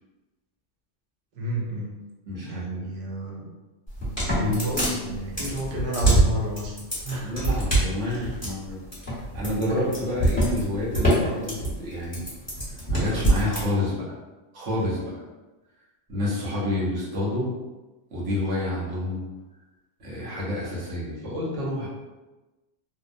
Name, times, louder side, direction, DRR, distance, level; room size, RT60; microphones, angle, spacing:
voice 1, 1.3-1.9 2.4-3.5 4.2-6.7 7.0-7.3 8.0-8.3, equal, 60° right, -3 dB, 0.7 m, -31 dB
voice 2, 2.3-2.9 4.1-4.9 5.6-5.7 7.2-8.8 9.3-12.2 12.7-14.0 14.5-15.2 16.1-17.5 18.1-19.2 20.0-21.9, left 1 dB, 75° right, -6 dB, 1.1 m, -29 dB
sound 1, 3.9-13.6, right 2 dB, 15° left, 1.0 m, -24 dB
2.7 x 2.0 x 2.5 m, 1.1 s
omnidirectional pair, 1.2 m